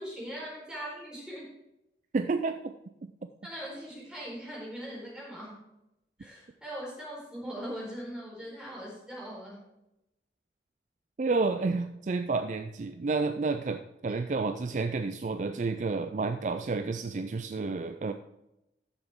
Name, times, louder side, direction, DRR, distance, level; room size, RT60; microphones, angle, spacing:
voice 1, 0.0-1.5 3.4-5.6 6.2-9.6, equal, 5° right, -5 dB, 4.2 m, -40 dB
voice 2, 2.1-2.6 11.2-18.1, right 3 dB, 45° right, 8 dB, 0.4 m, -30 dB
13.5 x 7.1 x 3.6 m, 0.88 s
head